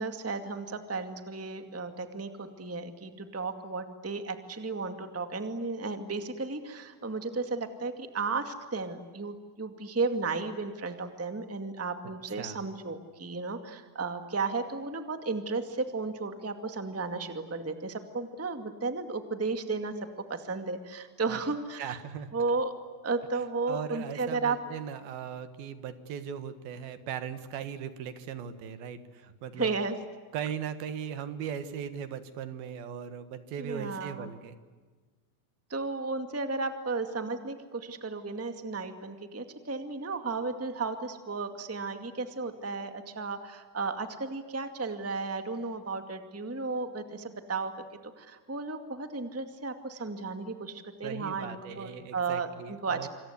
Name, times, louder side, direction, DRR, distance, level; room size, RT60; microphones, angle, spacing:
voice 1, 0.0-22.0 22.3-22.7 23.0-24.6 29.5-29.9 33.6-34.3 35.7-47.7 48.2-53.1, right 4 dB, 5° right, 7 dB, 1.2 m, -34 dB
voice 2, 21.8-22.3 23.7-29.7 30.3-34.6 51.0-53.1, right 8 dB, 90° right, 11 dB, 3.5 m, -38 dB
27.0 x 26.5 x 8.3 m, 1.4 s
omnidirectional pair, 4.1 m